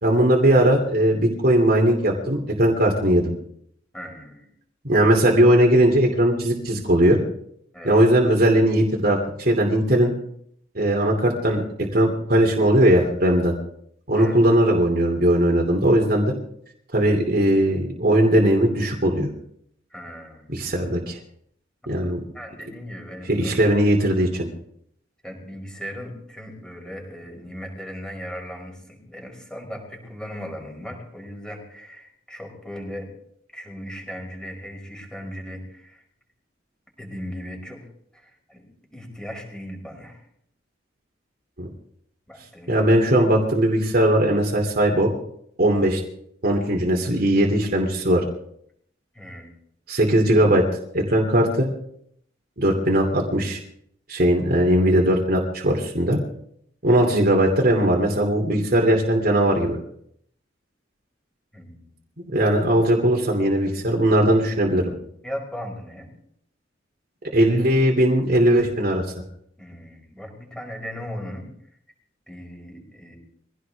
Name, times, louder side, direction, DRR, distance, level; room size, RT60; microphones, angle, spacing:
voice 1, 0.0-3.3 4.8-7.2 7.8-10.1 10.7-13.5 14.1-16.3 16.9-19.3 20.5-21.2 21.9-22.2 23.3-24.5 41.6-41.7 42.7-45.1 45.6-46.0 46.4-48.2 49.9-50.7 50.9-51.7 52.6-53.6 54.1-56.2 56.8-59.8 62.2-64.8 67.3-69.0, right 1 dB, 55° right, 0 dB, 2.9 m, -19 dB
voice 2, 3.9-4.5 7.7-8.0 14.2-14.4 19.9-20.5 21.9-23.6 25.2-33.1 33.5-36.0 37.0-37.9 38.1-38.7 38.9-40.2 42.3-42.9 49.1-49.5 61.5-61.9 65.2-66.1 69.6-71.5 72.3-73.2, equal, 5° left, 1 dB, 5.3 m, -37 dB
24.0 x 16.5 x 3.6 m, 0.69 s
head